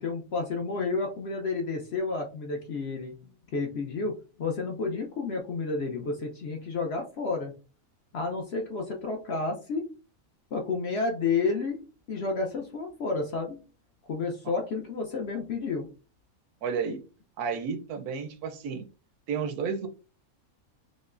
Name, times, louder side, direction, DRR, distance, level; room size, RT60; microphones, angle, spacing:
voice 1, 0.0-7.5 8.1-9.9 10.5-11.8 12.1-13.6 14.1-15.9, left 4 dB, 60° left, 2 dB, 0.7 m, -31 dB
voice 2, 16.6-17.0 17.4-18.9 19.3-19.9, right 6 dB, 90° right, 8 dB, 1.1 m, -32 dB
5.1 x 2.0 x 2.4 m, 0.34 s
omnidirectional pair, 1.5 m